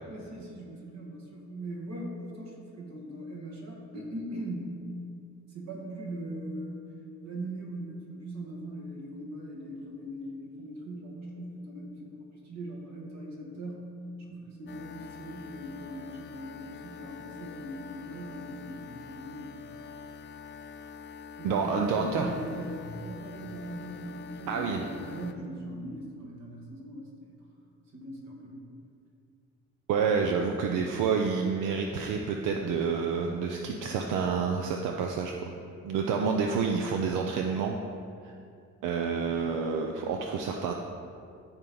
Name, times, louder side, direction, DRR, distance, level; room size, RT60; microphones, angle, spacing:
voice 1, 0.1-4.8 5.5-6.9 7.2-19.7 21.4-27.4 27.9-28.7, right 1 dB, 60° right, -2 dB, 2.0 m, -40 dB
sound 1, 14.7-25.4, left 5 dB, 40° left, 0.4 m, -45 dB
voice 2, 21.4-22.3 24.5-24.8 29.9-35.5 35.8-37.8 38.2-38.3 38.8-40.7, right 5 dB, 90° right, 2 dB, 0.6 m, -28 dB
12.5 x 4.5 x 3.9 m, 2.4 s
cardioid pair, 90°, 30 cm